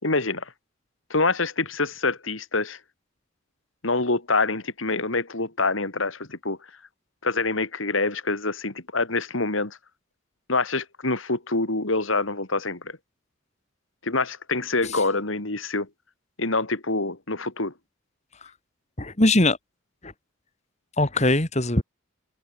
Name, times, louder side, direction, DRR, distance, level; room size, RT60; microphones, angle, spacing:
voice 1, 0.0-0.5 1.1-2.8 3.8-6.6 7.2-9.8 10.5-13.0 14.0-15.9 16.4-17.7, left 3 dB, 75° left, 3.1 m, -26 dB
voice 2, 19.0-19.6 20.0-20.1 21.0-21.8, left 2 dB, 35° left, 3.1 m, -21 dB
open air
head